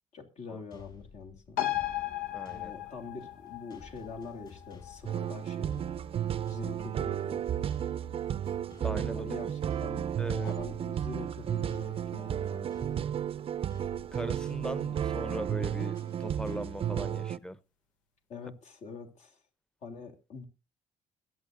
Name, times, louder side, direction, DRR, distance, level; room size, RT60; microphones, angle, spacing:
voice 1, 0.1-1.6 2.5-5.8 6.5-7.4 9.1-10.1 10.4-12.8 18.3-19.4 19.8-20.4, left 4 dB, 65° left, 3.0 m, -44 dB
sound 1, 0.7-17.2, left 4 dB, 35° left, 6.5 m, -54 dB
sound 2, 1.6-8.5 8.9-9.0, left 14 dB, 90° left, 1.0 m, -38 dB
voice 2, 2.3-2.7 8.8-9.5 10.2-10.6 14.1-17.6, equal, 5° left, 0.8 m, -39 dB
sound 3, 5.0-17.4, right 10 dB, 50° right, 0.5 m, -33 dB
22.0 x 8.5 x 2.6 m
cardioid pair, 85°, 13 cm